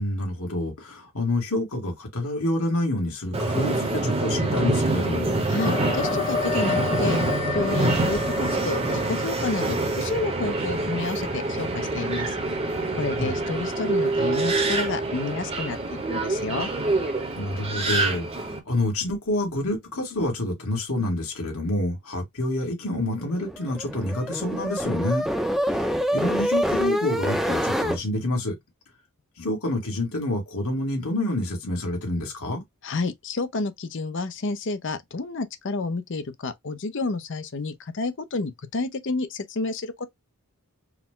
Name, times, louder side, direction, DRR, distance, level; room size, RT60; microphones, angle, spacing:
voice 1, 0.0-5.3 13.2-13.3 17.4-25.3 25.6-28.6 29.4-32.6, left 1 dB, 75° left, 2.1 m, -28 dB
Subway metro underground, 3.3-18.6, right 2 dB, 25° right, 1.0 m, -26 dB
voice 2, 5.5-12.4 13.0-16.7 32.8-40.1, left 3 dB, 55° left, 0.6 m, -30 dB
sound 1, 5.6-10.4, left 5 dB, 30° left, 0.9 m, -31 dB
sound 2, 23.3-28.0, equal, ahead, 0.7 m, -26 dB
4.7 x 2.2 x 3.7 m
head